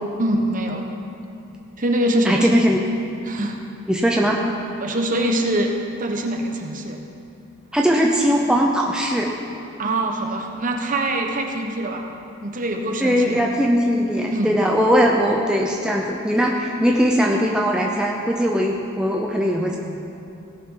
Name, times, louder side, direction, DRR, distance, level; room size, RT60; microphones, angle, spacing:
voice 1, 0.2-0.9 1.8-2.5 3.3-3.6 4.8-5.7 6.0-7.0 9.8-12.0 12.4-13.4 14.3-14.5, right 1 dB, 40° right, 2 dB, 1.0 m, -23 dB
voice 2, 2.2-2.8 3.9-4.4 7.7-9.3 13.0-19.8, equal, 5° right, -1 dB, 0.6 m, -20 dB
17.0 x 5.9 x 5.6 m, 2.7 s
head